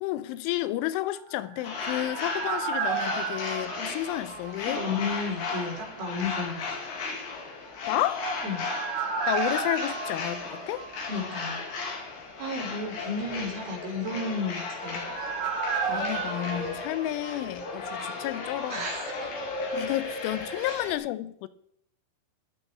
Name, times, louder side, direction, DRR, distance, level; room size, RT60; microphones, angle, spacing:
voice 1, 0.0-4.8 7.9-8.2 9.3-10.9 15.9-18.9 19.7-21.5, left 15 dB, 90° left, 3.2 m, -31 dB
sound 1, 1.2-5.0 5.3-5.4 7.8-11.5 11.7-11.8 14.1-18.0 18.2-18.3, right 6 dB, 55° right, 2.3 m, -34 dB
sound 2, 1.6-21.0, left 4 dB, 65° left, 4.7 m, -35 dB
voice 2, 4.7-6.7 8.4-8.7 11.1-11.6 12.4-15.0 18.7-19.3 20.6-20.8, left 3 dB, 80° right, 6.0 m, -33 dB
13.5 x 11.5 x 4.6 m
omnidirectional pair, 5.4 m